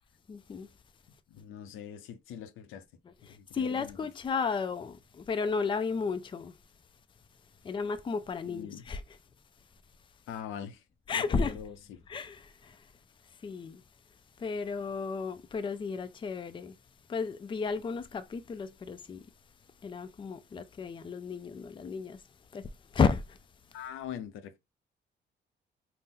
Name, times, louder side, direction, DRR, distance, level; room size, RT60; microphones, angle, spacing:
voice 1, 0.3-0.7 3.0-6.6 7.6-9.2 11.1-11.6 12.1-12.9 13.2-13.8 14.4-16.8 17.1-19.3 19.8-22.2 22.5-23.4, left 5 dB, 25° left, 0.4 m, -33 dB
voice 2, 1.3-2.8 3.3-4.0 8.4-8.8 10.3-10.8 11.2-12.0 23.7-24.6, left 9 dB, 90° left, 0.6 m, -43 dB
4.1 x 2.0 x 3.6 m
cardioid pair, 90°, 20 cm